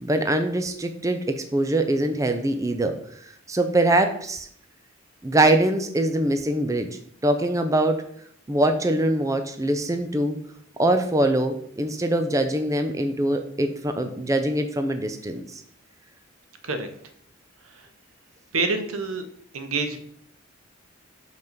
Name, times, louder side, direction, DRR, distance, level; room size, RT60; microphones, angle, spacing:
voice 1, 0.0-3.0 3.2-4.5 5.2-8.0 8.5-10.4 10.8-15.6, right 1 dB, 15° right, 7 dB, 0.6 m, -23 dB
voice 2, 18.5-19.2 19.5-20.0, right 3 dB, 90° right, 7 dB, 1.0 m, -27 dB
6.2 x 5.5 x 5.2 m, 0.65 s
head